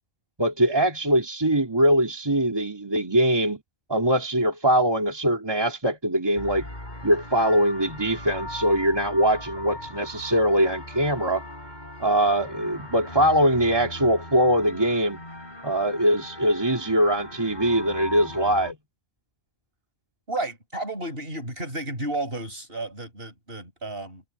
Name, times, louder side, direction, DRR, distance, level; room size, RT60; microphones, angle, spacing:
voice 1, 0.4-3.6 3.9-6.7 7.0-11.4 12.0-15.2 15.6-18.8, equal, 20° right, 2.4 m, -22 dB
sound 1, 6.4-18.7, left 1 dB, 40° left, 6.5 m, -39 dB
voice 2, 20.3-24.2, right 2 dB, 50° right, 7.8 m, -32 dB
omnidirectional pair, 1.2 m